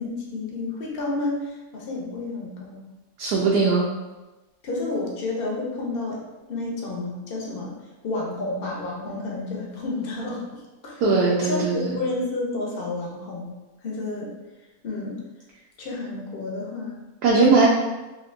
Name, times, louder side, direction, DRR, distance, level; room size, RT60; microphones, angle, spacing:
voice 1, 0.0-2.9 4.6-6.2 6.5-7.7 8.0-11.0 11.4-13.5 13.8-14.3 14.8-15.2 15.8-17.1, left 2 dB, 60° left, -2 dB, 0.6 m, -30 dB
voice 2, 3.2-3.9 11.0-12.0 17.2-17.7, right 3 dB, 90° right, -4 dB, 1.2 m, -19 dB
3.4 x 2.7 x 2.4 m, 1.1 s
omnidirectional pair, 1.7 m